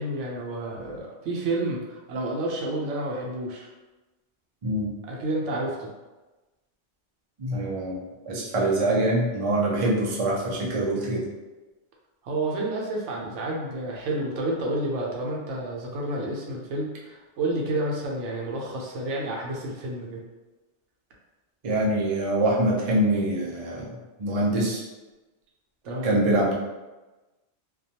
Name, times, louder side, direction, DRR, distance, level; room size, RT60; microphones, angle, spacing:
voice 1, 0.0-3.7 5.1-5.9 12.2-20.2 25.8-26.2, right 1 dB, 85° right, -2 dB, 0.9 m, -30 dB
voice 2, 7.4-11.2 21.6-24.8 26.0-26.5, right 1 dB, 45° right, -4 dB, 0.4 m, -24 dB
2.3 x 2.2 x 2.7 m, 1.1 s
omnidirectional pair, 1.2 m